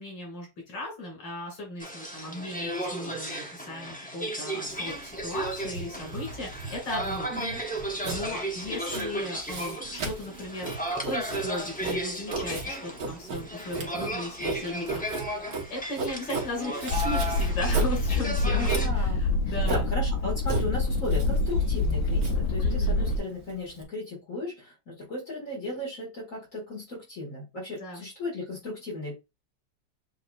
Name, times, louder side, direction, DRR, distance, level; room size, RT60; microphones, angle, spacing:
voice 1, 0.0-7.3 8.0-10.7 11.1-15.0 15.7-19.9 22.6-23.0 27.8-28.0, left 1 dB, 85° left, 2.7 m, -36 dB
sound 1, 1.8-18.9, right 1 dB, 10° left, 0.4 m, -35 dB
Writing, 4.7-23.8, right 3 dB, 60° right, 1.6 m, -36 dB
voice 2, 7.3-7.6 18.6-29.2, left 1 dB, 45° left, 2.2 m, -36 dB
sound 2, 16.9-23.2, left 2 dB, 65° left, 0.9 m, -26 dB
7.6 x 2.8 x 2.4 m
omnidirectional pair, 1.9 m